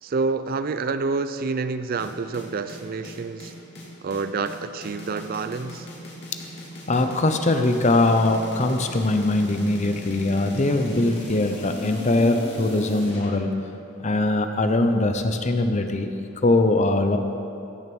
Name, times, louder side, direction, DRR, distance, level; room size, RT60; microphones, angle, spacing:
voice 1, 0.0-3.5 4.0-5.9, right 4 dB, 40° right, 11 dB, 0.4 m, -28 dB
sound 1, 2.0-13.3, equal, 50° left, 2.7 m, -38 dB
voice 2, 6.9-13.5 14.0-16.1 16.4-17.2, left 2 dB, 35° left, 7 dB, 0.7 m, -21 dB
16.0 x 6.6 x 6.1 m, 3.0 s
head